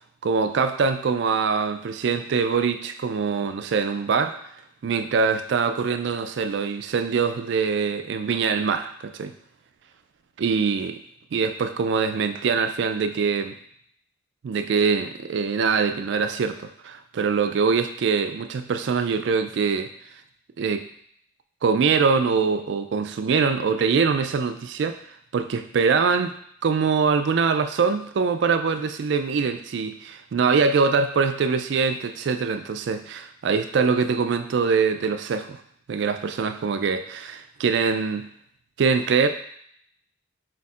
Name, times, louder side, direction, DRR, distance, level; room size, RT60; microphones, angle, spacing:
voice 1, 0.2-4.4 4.8-9.3 10.4-10.9 11.3-13.6 14.4-19.9 20.6-20.8 21.6-25.0 25.3-26.3 26.6-35.6 35.9-38.3 38.8-39.3, right 5 dB, 60° right, 8 dB, 0.3 m, -23 dB
4.5 x 2.4 x 4.1 m, 0.66 s
head